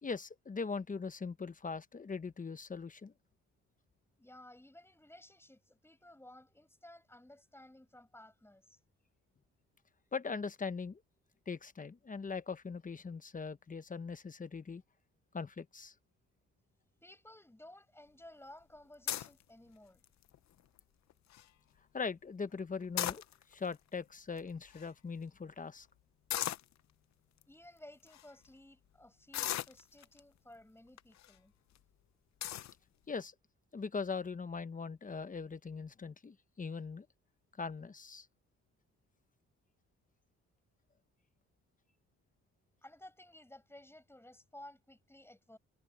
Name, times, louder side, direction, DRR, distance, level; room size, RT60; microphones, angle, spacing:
voice 1, 0.0-3.1 10.1-11.0 11.5-14.8 15.3-15.9 21.9-23.2 23.5-25.9 33.1-33.3 33.7-37.1 37.6-38.3, left 5 dB, 25° left, 1.1 m, -40 dB
voice 2, 4.2-8.8 17.0-20.0 27.5-31.5 42.8-45.6, left 1 dB, 10° left, 6.6 m, -56 dB
sound 1, 19.1-19.4 20.0-20.4 20.8-20.9 21.1-21.4 22.8-23.7 24.4-24.5 24.7-24.9 26.3-26.7 27.4-27.5 28.1-28.2 29.3-30.2 31.0-31.3 31.8-31.9 32.4-32.7, left 12 dB, 65° left, 0.9 m, -37 dB
cardioid pair, 90°, 30 cm